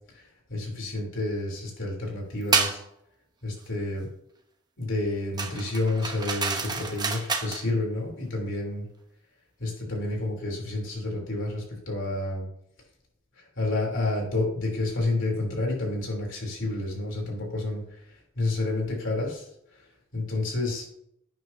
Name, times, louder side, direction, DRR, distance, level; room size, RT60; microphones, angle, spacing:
voice 1, 0.1-2.8 3.4-4.1 4.8-8.9 9.6-12.5 13.6-19.8 20.1-20.9, left 2 dB, 60° left, -1 dB, 3.6 m, -30 dB
sound 1, 2.5-2.8 5.4-7.6, right 4 dB, 20° right, 1.0 m, -28 dB
12.0 x 9.2 x 2.9 m, 0.73 s
head